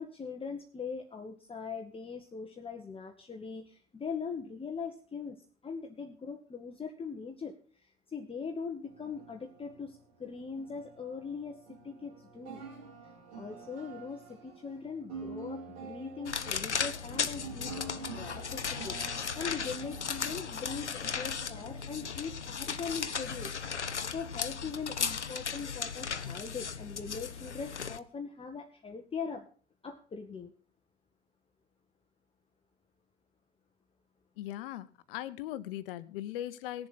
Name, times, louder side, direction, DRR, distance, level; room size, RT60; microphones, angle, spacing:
voice 1, 0.0-12.6 13.0-23.6 24.0-29.5 29.8-30.5, left 5 dB, 15° left, 4 dB, 1.2 m, -41 dB
sound 1, 8.8-23.5, right 4 dB, 65° right, 4.3 m, -48 dB
sound 2, 16.3-28.0, left 6 dB, 85° left, 0.7 m, -36 dB
voice 2, 34.4-36.9, left 13 dB, 55° left, 16 dB, 1.0 m, -39 dB
19.0 x 7.3 x 4.1 m, 0.39 s
figure-of-eight pair, 80°, 34 cm